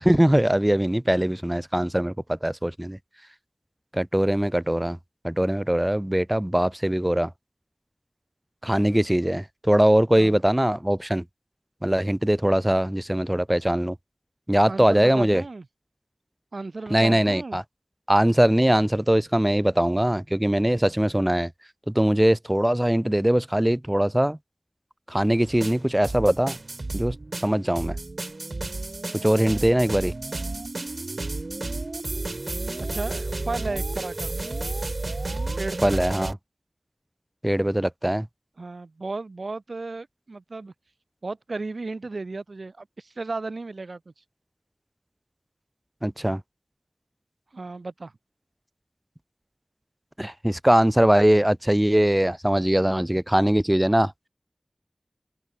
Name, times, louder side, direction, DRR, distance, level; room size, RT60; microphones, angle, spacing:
voice 1, 0.0-3.0 3.9-5.0 5.2-7.3 8.6-11.2 11.8-14.0 14.5-15.4 16.9-17.6 18.1-21.5 21.9-24.4 25.1-26.6 26.9-27.2 27.4-28.0 29.2-30.1 35.8-36.3 37.4-38.3 46.0-46.4 50.2-54.1, right 1 dB, 15° right, 0.5 m, -21 dB
voice 2, 14.7-15.6 16.5-17.6 32.8-34.3 35.6-36.3 38.6-40.7 41.2-44.0 47.5-48.1, right 3 dB, 80° right, 1.3 m, -34 dB
sound 1, 25.4-36.3, right 2 dB, 65° right, 0.6 m, -32 dB
open air
wide cardioid pair, 40°, 0 cm